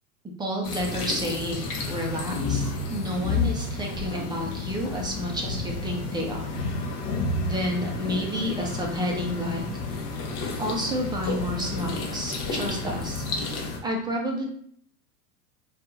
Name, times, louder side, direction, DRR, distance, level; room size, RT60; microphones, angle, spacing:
voice 1, 0.4-6.6 7.4-9.6 9.9-10.1 10.6-13.2 13.8-14.4, equal, 10° right, 0 dB, 0.4 m, -30 dB
sound 1, 0.6-13.8, left 3 dB, 45° left, 0.8 m, -31 dB
2.6 x 2.4 x 3.8 m, 0.62 s
hypercardioid pair, 95°, 46 cm